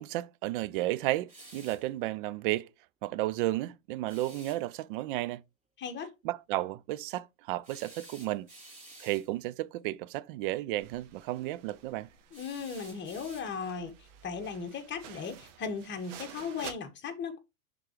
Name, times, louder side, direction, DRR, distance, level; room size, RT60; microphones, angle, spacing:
voice 1, 0.0-2.7 3.0-5.4 6.2-8.5 9.0-12.1, right 16 dB, 40° right, 0.4 m, -33 dB
sound 1, 1.3-1.9 4.1-4.6 7.6-9.3 12.3-13.8, right 2 dB, 20° right, 3.0 m, -52 dB
voice 2, 5.8-6.1 12.3-13.9 14.2-17.4, left 5 dB, 25° left, 1.4 m, -37 dB
sound 2, 10.8-16.7, right 9 dB, 60° right, 1.3 m, -51 dB
10.5 x 3.8 x 3.1 m
hypercardioid pair, 100°, 42 cm